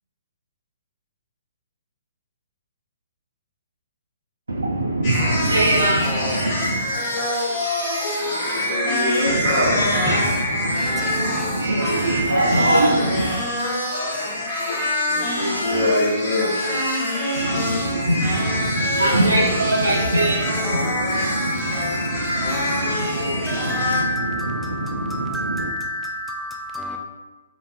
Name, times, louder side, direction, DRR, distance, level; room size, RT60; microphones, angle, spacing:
voice 1, 4.5-6.8 9.2-13.3 17.3-25.7, right 1 dB, 80° right, 0.3 m, -23 dB
sound 1, 5.0-24.0, left 1 dB, 40° left, 1.0 m, -25 dB
voice 2, 8.3-9.8 15.1-16.5, left 1 dB, 75° left, 0.8 m, -24 dB
voice 3, 10.7-11.5 20.7-20.9 21.1-27.0, left 1 dB, 5° left, 0.3 m, -31 dB
3.7 x 2.5 x 2.3 m
figure-of-eight pair, 125°, 0 cm